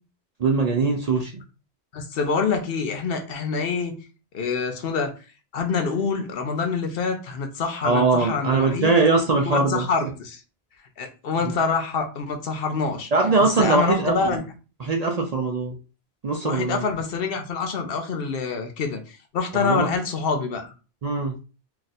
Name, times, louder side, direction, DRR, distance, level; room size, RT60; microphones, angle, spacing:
voice 1, 0.4-1.4 7.8-10.1 13.1-14.4 14.8-15.8 16.2-16.8 19.5-19.9 21.0-21.3, right 3 dB, 50° right, 0.5 m, -21 dB
voice 2, 1.9-3.9 4.3-5.1 5.5-9.0 9.5-10.4 11.0-13.1 13.4-14.4 16.4-20.7, left 5 dB, 65° left, 0.8 m, -26 dB
2.5 x 2.4 x 4.0 m
omnidirectional pair, 1.1 m